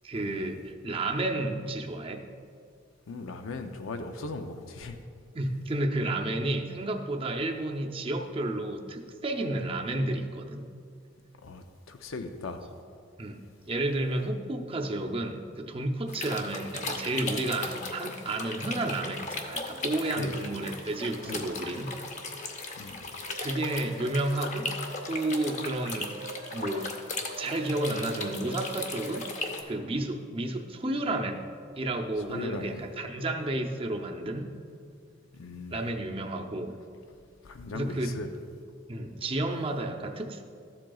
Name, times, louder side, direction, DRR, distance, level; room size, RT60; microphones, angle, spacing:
voice 1, 0.0-2.2 5.3-10.7 13.2-21.9 23.4-24.7 25.1-26.1 26.5-26.9 27.4-29.3 29.7-31.5 31.8-34.5 35.7-36.7 37.7-38.1 38.9-40.4, right 2 dB, 25° right, 3 dB, 0.6 m, -31 dB
voice 2, 3.1-5.0 11.4-12.7 20.2-20.4 21.2-21.4 22.8-23.0 32.3-32.8 35.3-35.8 37.4-38.3, left 3 dB, 85° left, 7 dB, 0.6 m, -38 dB
sound 1, 16.1-29.6, left 3 dB, 35° left, 0.8 m, -37 dB
sound 2, 23.2-24.3 24.7-29.5, right 3 dB, 90° right, 1.2 m, -45 dB
13.5 x 7.6 x 2.3 m, 2.3 s
head